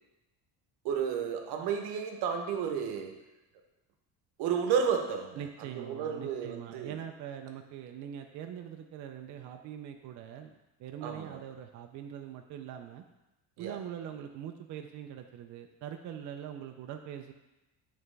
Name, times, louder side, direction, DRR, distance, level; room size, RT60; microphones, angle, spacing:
voice 1, 0.8-3.2 4.4-7.0 11.0-11.4 13.6-13.8, right 7 dB, 80° right, 5 dB, 0.9 m, -32 dB
voice 2, 5.4-13.0 13.6-17.3, right 9 dB, 50° right, 5 dB, 0.5 m, -43 dB
8.8 x 3.5 x 3.3 m, 0.99 s
cardioid pair, 155°, 39 cm